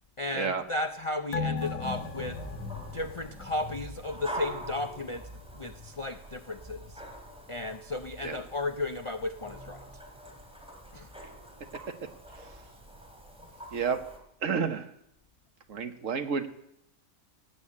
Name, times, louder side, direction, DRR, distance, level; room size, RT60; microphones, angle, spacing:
voice 1, 0.2-2.4 2.9-5.3 5.5-7.0 7.5-9.8 10.9-11.1, left 2 dB, 50° left, 0.3 m, -34 dB
sound 1, 1.3-4.2 4.6-4.7, left 4 dB, 75° left, 1.4 m, -36 dB
sound 2, 1.8-14.2, equal, 5° right, 3.0 m, -44 dB
voice 2, 13.7-14.0 14.4-14.9 15.7-16.5, right 6 dB, 65° right, 1.5 m, -30 dB
17.0 x 8.3 x 8.6 m
omnidirectional pair, 1.5 m